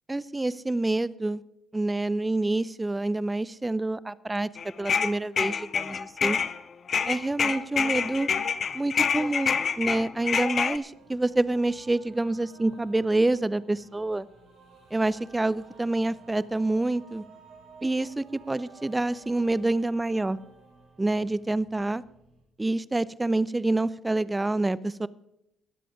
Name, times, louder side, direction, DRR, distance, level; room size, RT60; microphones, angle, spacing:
voice 1, 0.1-1.4 1.7-4.5 4.8-6.4 7.1-8.3 8.7-14.3 14.9-17.2 17.8-20.4 21.0-22.0 22.6-25.1, right 2 dB, 15° right, 19 dB, 0.6 m, -27 dB
sound 1, 4.6-6.6 6.9-10.8, left 6 dB, 50° left, 0.8 m, -27 dB
sound 2, 10.9-22.4, right 4 dB, 65° right, 6.2 m, -54 dB
20.5 x 7.6 x 5.1 m, 0.81 s
supercardioid pair, 60°, 0 cm